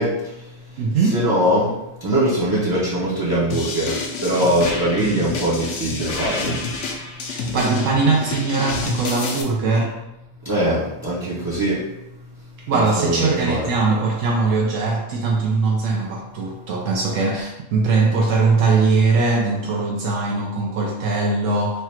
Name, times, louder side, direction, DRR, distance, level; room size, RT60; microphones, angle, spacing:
voice 1, 0.0-0.8 1.1-6.7 10.4-11.8 12.7-13.7, right 1 dB, 25° right, -8 dB, 0.6 m, -22 dB
voice 2, 0.8-1.2 7.2-9.9 12.7-21.8, right 3 dB, 80° right, -2 dB, 0.9 m, -20 dB
sound 1, 3.5-9.4, left 3 dB, 70° left, 0.9 m, -28 dB
3.2 x 2.4 x 4.2 m, 0.95 s
omnidirectional pair, 1.3 m